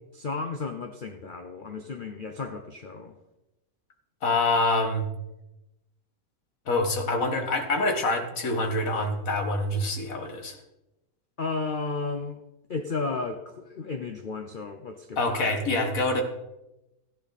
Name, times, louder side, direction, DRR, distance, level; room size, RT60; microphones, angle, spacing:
voice 1, 0.1-3.2 11.4-12.4 12.7-15.5, left 4 dB, 45° left, 5 dB, 0.7 m, -33 dB
voice 2, 4.2-5.1 6.7-10.6 15.2-16.2, left 2 dB, 65° left, 5 dB, 1.9 m, -26 dB
14.0 x 10.0 x 4.2 m, 0.95 s
omnidirectional pair, 1.6 m